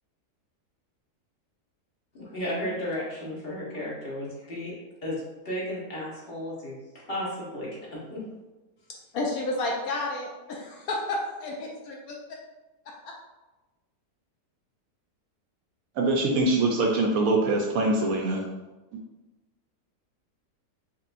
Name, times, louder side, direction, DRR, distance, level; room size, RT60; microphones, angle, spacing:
voice 1, 2.1-4.7 5.0-6.7 7.1-8.2, left 1 dB, 40° left, -6 dB, 1.2 m, -34 dB
voice 2, 9.1-12.1, left 2 dB, 70° left, -1 dB, 0.9 m, -31 dB
voice 3, 16.0-18.5, right 2 dB, 70° right, 0 dB, 0.9 m, -23 dB
4.6 x 3.0 x 2.5 m, 1.1 s
omnidirectional pair, 1.7 m